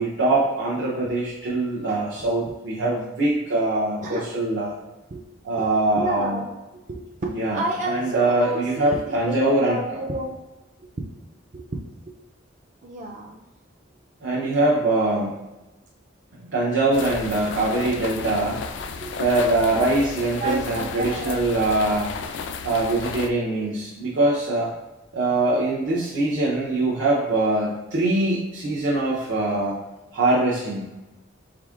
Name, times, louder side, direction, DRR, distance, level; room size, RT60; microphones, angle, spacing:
voice 1, 0.0-4.7 5.4-6.4 7.3-9.8 14.2-15.4 16.4-18.6 19.2-22.1 22.6-24.7 25.1-29.8 30.1-30.8, right 2 dB, 75° right, -6 dB, 0.8 m, -23 dB
voice 2, 5.9-6.6 6.9-10.4 11.0-11.1 11.5-11.8 12.8-13.4 19.0-19.2 20.4-21.4, right 2 dB, 40° right, -2 dB, 0.4 m, -30 dB
sound 1, 16.9-23.3, left 5 dB, 65° left, 0.3 m, -33 dB
4.8 x 3.6 x 2.4 m, 1.0 s
head